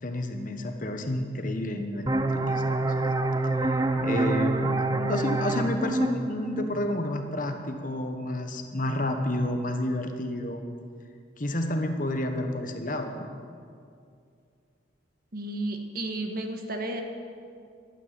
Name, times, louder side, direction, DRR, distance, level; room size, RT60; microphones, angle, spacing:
voice 1, 0.0-2.1 2.3-3.1 3.6-3.7 4.0-10.6 11.4-13.3, left 1 dB, 45° left, 5 dB, 1.2 m, -30 dB
sound 1, 2.1-7.5, right 2 dB, 20° right, 0.6 m, -27 dB
voice 2, 15.3-17.0, right 1 dB, 50° right, 4 dB, 1.5 m, -32 dB
12.5 x 9.2 x 9.1 m, 2.4 s
head